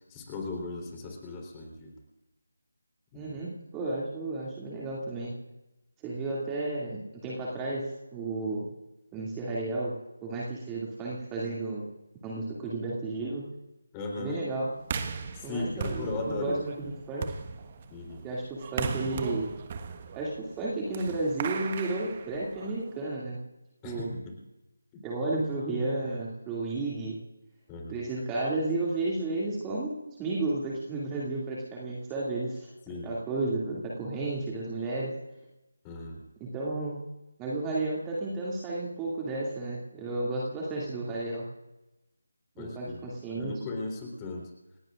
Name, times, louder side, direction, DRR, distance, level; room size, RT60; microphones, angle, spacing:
voice 1, 0.1-1.9 3.1-3.3 13.9-14.4 15.4-16.6 17.9-18.3 23.8-24.3 24.9-25.0 27.7-28.0 32.9-33.1 35.8-36.2 42.6-43.1 43.4-44.4, left 2 dB, 15° left, 1 dB, 3.7 m, -37 dB
voice 2, 3.1-5.3 6.0-8.6 9.1-9.9 10.2-11.8 12.2-13.4 14.2-14.7 15.4-17.2 18.2-19.5 20.1-23.4 23.8-24.1 25.0-27.2 27.9-32.7 33.0-35.1 36.4-37.0 37.4-41.4 42.6-43.5, right 2 dB, 10° right, -5 dB, 2.5 m, -32 dB
sound 1, 14.8-22.9, right 5 dB, 30° right, 1.4 m, -37 dB
29.5 x 17.0 x 2.5 m, 0.97 s
figure-of-eight pair, 160°, 0 cm